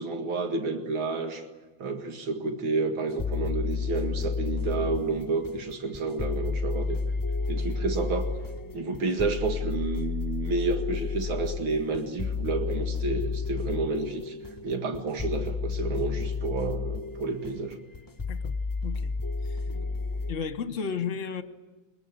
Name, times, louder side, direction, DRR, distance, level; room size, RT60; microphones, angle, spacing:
voice 1, 0.0-1.5 1.8-7.0 7.5-8.3 8.7-17.8, right 3 dB, 85° right, 6 dB, 2.7 m, -30 dB
sound 1, 3.1-20.4, left 5 dB, 20° left, 0.5 m, -32 dB
voice 2, 20.3-21.4, left 6 dB, 45° left, 11 dB, 1.4 m, -33 dB
22.5 x 21.0 x 9.6 m, 1.2 s
omnidirectional pair, 2.2 m